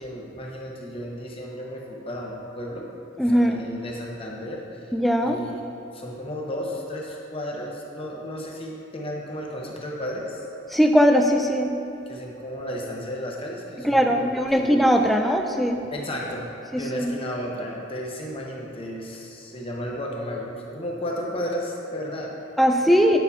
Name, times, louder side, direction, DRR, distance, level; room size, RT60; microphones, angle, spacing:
voice 1, 0.0-3.1 3.3-4.9 5.2-5.6 5.9-10.5 12.1-14.3 14.5-14.7 15.9-22.5 22.9-23.0, equal, 25° left, -2 dB, 0.8 m, -33 dB
voice 2, 3.2-3.6 4.9-5.4 10.7-11.7 13.8-15.8 16.7-17.1 22.6-23.2, equal, ahead, 3 dB, 0.3 m, -20 dB
9.1 x 5.8 x 2.8 m, 2.8 s
head